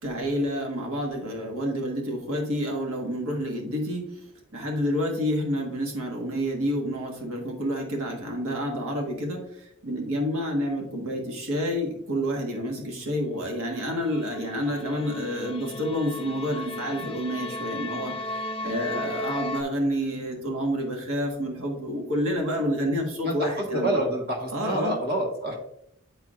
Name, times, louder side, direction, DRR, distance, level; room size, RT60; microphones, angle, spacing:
voice 1, 0.0-4.2 4.5-24.1 24.5-25.0, equal, 85° right, 1 dB, 1.4 m, -29 dB
sound 1, 13.7-19.6, left 2 dB, 25° left, 0.4 m, -35 dB
voice 2, 23.2-25.5, right 1 dB, 45° right, -1 dB, 1.4 m, -27 dB
9.6 x 4.5 x 2.4 m, 0.75 s
head